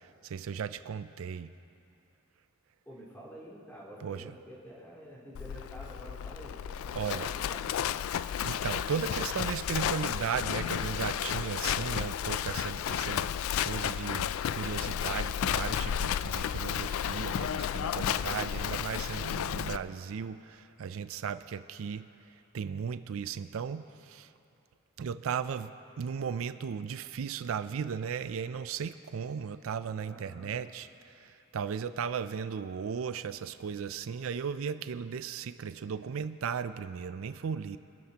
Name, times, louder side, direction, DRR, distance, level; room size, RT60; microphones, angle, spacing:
voice 1, 0.2-1.5 4.0-4.3 6.9-7.3 8.4-22.1 22.5-24.3 25.0-37.8, right 7 dB, 80° right, 12 dB, 0.4 m, -36 dB
voice 2, 2.8-7.7 17.8-18.5 30.0-30.6, equal, 10° left, -8 dB, 4.1 m, -49 dB
Livestock farm animals working animals, 5.3-19.8, left 9 dB, 85° left, 0.3 m, -32 dB
25.5 x 13.0 x 2.9 m, 2.7 s
head